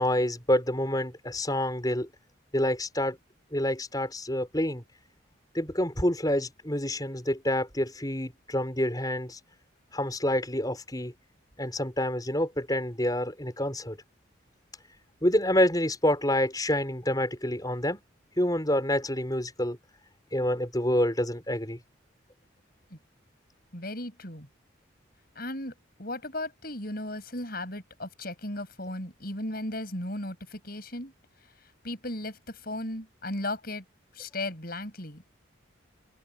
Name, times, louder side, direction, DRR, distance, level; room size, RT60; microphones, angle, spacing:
voice 1, 0.0-2.1 2.5-3.2 3.5-4.8 5.5-9.4 9.9-11.1 11.6-14.0 15.2-18.0 18.4-19.8 20.3-21.8, left 1 dB, 20° left, 5.3 m, -27 dB
voice 2, 23.7-24.5 25.4-25.7 26.0-31.1 31.8-33.8 34.2-35.4, left 1 dB, 45° left, 7.7 m, -36 dB
open air
head